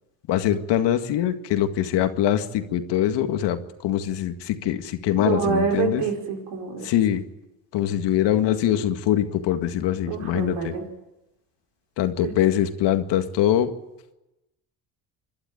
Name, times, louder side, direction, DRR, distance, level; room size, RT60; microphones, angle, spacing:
voice 1, 0.3-6.0 6.8-7.2 7.7-10.7 12.0-13.7, left 11 dB, 70° left, 8 dB, 1.9 m, -23 dB
voice 2, 5.2-6.9 10.1-10.8, right 6 dB, 85° right, 2 dB, 5.2 m, -26 dB
26.5 x 12.0 x 9.3 m, 0.98 s
supercardioid pair, 85°, 43 cm